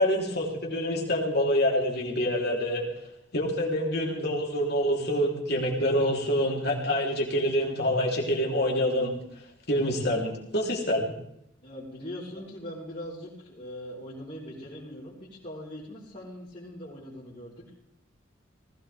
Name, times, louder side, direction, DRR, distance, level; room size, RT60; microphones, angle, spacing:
voice 1, 0.0-2.8 3.3-9.2 9.7-11.1, equal, 55° left, -1 dB, 3.9 m, -26 dB
voice 2, 11.6-17.7, equal, 35° left, -9 dB, 4.5 m, -41 dB
19.5 x 17.0 x 3.7 m, 0.76 s
head